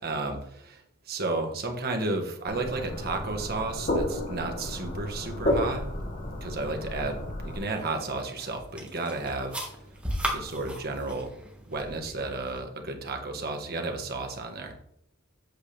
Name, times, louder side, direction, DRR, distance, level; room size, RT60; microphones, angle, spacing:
voice 1, 0.0-5.8 6.2-9.6 10.3-11.4 11.7-14.7, right 2 dB, 45° right, 4 dB, 1.3 m, -32 dB
sound 1, 2.5-7.6, left 1 dB, 40° left, 1.4 m, -32 dB
sound 2, 7.5-12.6, right 1 dB, 5° right, 1.6 m, -37 dB
8.3 x 6.9 x 3.3 m, 0.73 s
head